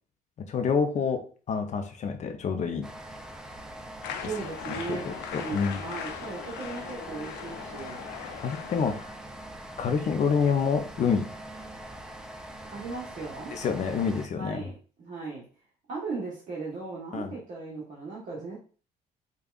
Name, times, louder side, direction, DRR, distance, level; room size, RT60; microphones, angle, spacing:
voice 1, 0.5-1.2 1.5-2.9 4.7-5.9 8.4-9.1 9.8-11.3 13.5-14.7 17.1-17.3, left 6 dB, 45° left, 6 dB, 0.6 m, -27 dB
sound 1, 2.8-14.3, right 1 dB, 5° right, 0.4 m, -43 dB
sound 2, 4.0-9.0, left 8 dB, 90° left, 0.5 m, -39 dB
voice 2, 4.2-8.0 12.7-13.5 14.3-15.4 15.9-18.6, right 4 dB, 50° right, -5 dB, 1.1 m, -37 dB
5.1 x 2.3 x 2.4 m, 0.39 s
cardioid pair, 110°, 17 cm